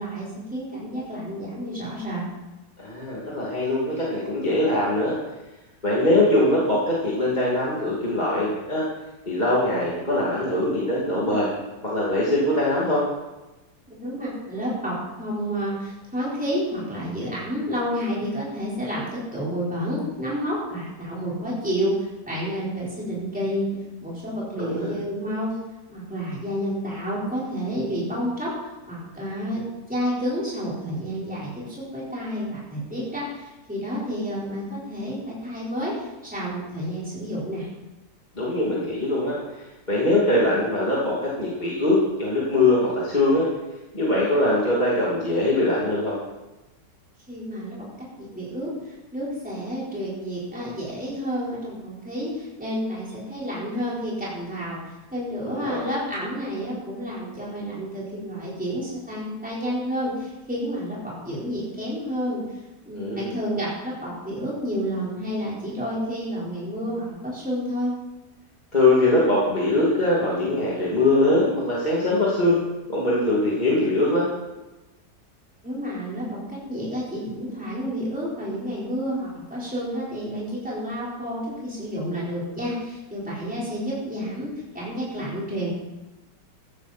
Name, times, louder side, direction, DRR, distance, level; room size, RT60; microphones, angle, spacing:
voice 1, 0.0-2.2 13.9-23.7 24.0-25.5 25.9-37.7 47.3-47.9 48.2-62.6 62.8-67.9 75.6-85.7, equal, 5° right, -7 dB, 4.7 m, -30 dB
voice 2, 2.8-5.1 5.8-8.8 9.3-11.5 11.8-13.0 24.6-24.9 38.3-43.5 43.9-46.1 55.4-55.9 62.9-63.4 68.7-72.6 72.9-74.3, left 1 dB, 25° left, -7 dB, 2.9 m, -22 dB
15.5 x 12.0 x 4.4 m, 1.0 s
omnidirectional pair, 1.9 m